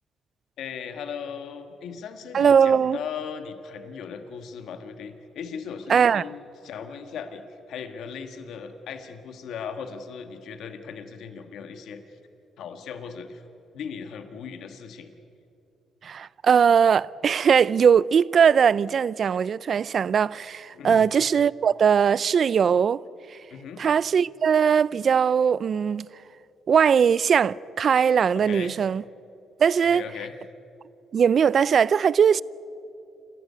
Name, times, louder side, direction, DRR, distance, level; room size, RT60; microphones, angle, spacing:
voice 1, 0.6-12.0 12.6-13.4 13.7-15.1 20.7-21.1 23.5-23.8 28.3-28.8 29.8-30.4, left 6 dB, 75° left, 1.7 m, -38 dB
voice 2, 2.3-3.0 5.9-6.2 16.0-23.0 23.8-26.1 26.7-29.0 29.6-30.0 31.1-32.4, right 7 dB, 50° right, 0.4 m, -20 dB
29.0 x 14.0 x 9.6 m
cardioid pair, 90°, 0 cm